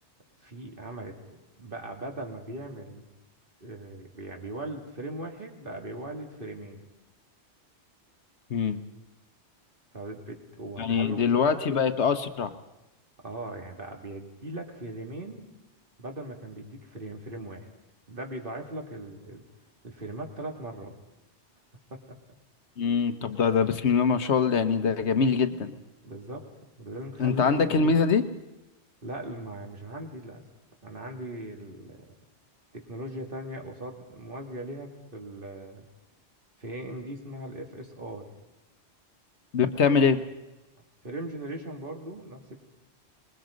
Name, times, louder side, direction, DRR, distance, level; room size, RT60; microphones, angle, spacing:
voice 1, 0.4-3.1 3.6-6.8 9.9-11.5 13.2-15.4 16.0-17.7 18.1-19.4 19.8-20.9 21.9-22.2 26.0-26.5 26.8-27.6 29.0-30.4 30.8-32.1 32.7-35.9 36.6-38.3 41.0-42.6, right 1 dB, 50° right, 2 dB, 2.9 m, -39 dB
voice 2, 10.8-12.5 22.8-25.7 27.2-28.3 39.5-40.2, left 5 dB, 80° left, 10 dB, 1.4 m, -23 dB
26.0 x 21.0 x 5.2 m, 1.0 s
omnidirectional pair, 1.1 m